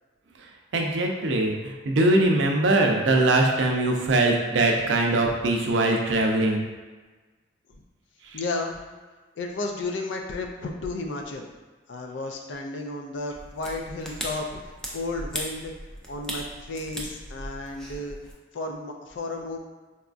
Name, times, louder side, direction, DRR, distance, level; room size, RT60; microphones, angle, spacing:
voice 1, 0.7-6.6, right 2 dB, 80° right, 1 dB, 0.5 m, -22 dB
voice 2, 8.3-8.8 9.4-11.5 11.9-15.7 16.1-18.2 18.5-19.6, left 2 dB, 75° left, 2 dB, 0.4 m, -33 dB
sound 1, 13.3-18.3, equal, 5° left, 0.4 m, -38 dB
4.0 x 2.3 x 2.5 m, 1.3 s
head